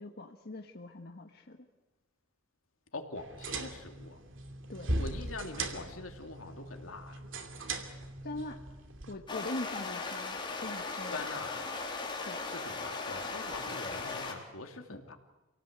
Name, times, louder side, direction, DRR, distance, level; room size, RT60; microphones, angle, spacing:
voice 1, 0.0-1.6 4.7-5.0 8.2-8.7 9.1-11.3 12.2-12.5 14.9-15.0, left 2 dB, 50° left, 3 dB, 1.5 m, -42 dB
voice 2, 2.9-4.2 4.9-7.1 11.1-11.8 12.5-15.2, left 3 dB, 80° left, 5 dB, 2.8 m, -43 dB
sound 1, 3.2-9.1, right 2 dB, 65° right, 2.7 m, -39 dB
sound 2, 9.3-14.3, left 3 dB, 25° left, 4.2 m, -38 dB
28.0 x 18.0 x 8.1 m, 1.1 s
head